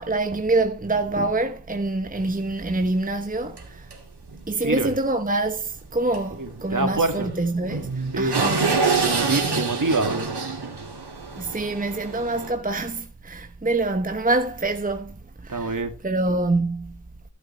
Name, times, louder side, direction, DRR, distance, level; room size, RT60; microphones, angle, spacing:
voice 1, 0.0-3.6 4.5-7.9 8.1-8.6 11.4-15.1 15.5-15.7 16.0-16.9, right 2 dB, 20° right, 1.0 m, -25 dB
sound 1, 2.2-2.3 2.8-2.9 3.6-3.7 3.9-4.0 4.3-4.4 6.1-6.2 6.5-6.6 7.2-12.5, right 4 dB, 80° right, 2.4 m, -26 dB
voice 2, 4.6-5.0 6.3-7.3 8.1-8.4 9.0-10.3 15.5-15.9, right 3 dB, 50° right, 2.1 m, -25 dB
15.0 x 7.8 x 3.3 m
wide cardioid pair, 50°, 39 cm